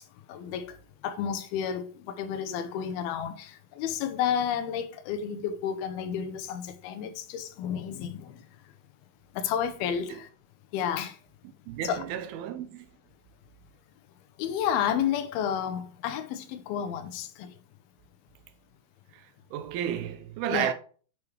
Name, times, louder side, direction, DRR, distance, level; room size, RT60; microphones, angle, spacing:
voice 1, 0.3-8.4 9.3-10.3 10.7-11.2 11.8-12.0 14.4-17.5 20.5-20.7, left 8 dB, 85° left, 2.6 m, -31 dB
voice 2, 11.7-12.9 19.1-20.7, right 10 dB, 85° right, 2.6 m, -32 dB
8.4 x 4.8 x 3.3 m
omnidirectional pair, 4.4 m